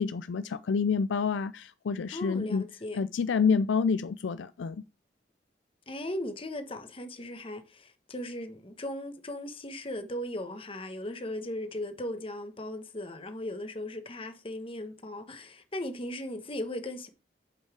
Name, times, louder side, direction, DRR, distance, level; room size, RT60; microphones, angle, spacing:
voice 1, 0.0-2.6 2.9-4.8, left 5 dB, 85° left, 0.4 m, -28 dB
voice 2, 2.1-3.0 5.9-17.1, left 1 dB, 30° left, 1.1 m, -37 dB
7.7 x 5.5 x 5.0 m
head